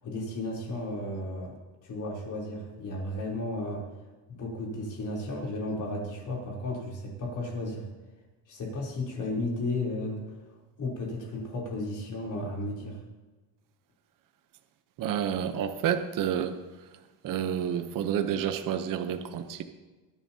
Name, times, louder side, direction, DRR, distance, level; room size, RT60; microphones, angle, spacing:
voice 1, 0.0-3.9 4.3-7.9 8.5-10.4 10.8-13.0, left 2 dB, 45° left, -2 dB, 3.5 m, -34 dB
voice 2, 15.0-16.5 17.2-19.6, right 9 dB, 50° right, 8 dB, 0.9 m, -29 dB
22.0 x 11.0 x 2.8 m, 1.2 s
cardioid pair, 160°, 43 cm